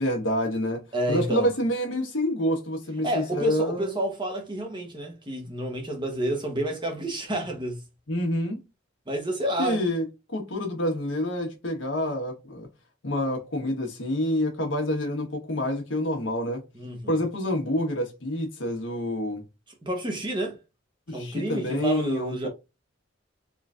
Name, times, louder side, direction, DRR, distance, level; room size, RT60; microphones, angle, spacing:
voice 1, 0.0-3.9 8.1-8.6 9.6-12.7 13.0-16.6 17.1-19.4 21.1-22.3, left 1 dB, 85° left, 1.2 m, -27 dB
voice 2, 0.9-1.5 3.0-7.8 9.1-9.8 16.7-17.2 19.8-20.6 21.1-22.5, right 1 dB, 25° right, 0.9 m, -29 dB
3.8 x 3.1 x 2.4 m
head